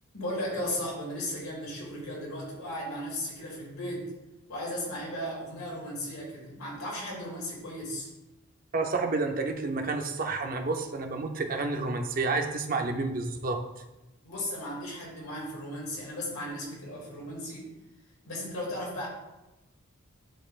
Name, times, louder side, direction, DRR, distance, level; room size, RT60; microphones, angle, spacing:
voice 1, 0.1-4.1 4.5-8.1 14.2-17.7 18.2-19.1, left 1 dB, 85° left, -3 dB, 2.3 m, -36 dB
voice 2, 8.7-13.6, right 3 dB, 40° right, 4 dB, 0.6 m, -30 dB
10.0 x 4.2 x 2.4 m, 0.99 s
head